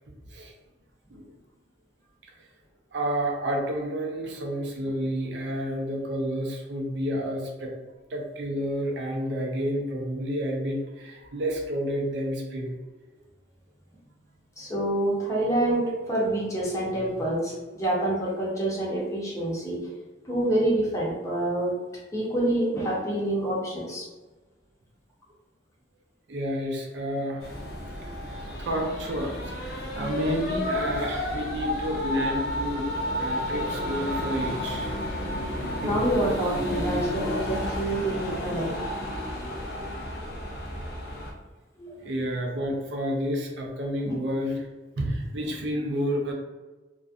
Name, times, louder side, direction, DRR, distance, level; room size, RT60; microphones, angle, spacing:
voice 1, 2.9-7.7 8.1-12.8 26.3-27.5 28.2-34.9 35.8-36.0 42.0-44.7 45.0-46.3, equal, 75° right, 1 dB, 0.5 m, -30 dB
voice 2, 14.6-19.8 20.2-21.8 22.1-24.1 35.8-38.7 41.8-41.9 44.0-44.2, right 1 dB, 20° left, -5 dB, 0.7 m, -27 dB
sound 1, 27.4-41.3, left 1 dB, 60° left, 0.6 m, -31 dB
2.5 x 2.1 x 2.4 m, 1.2 s
head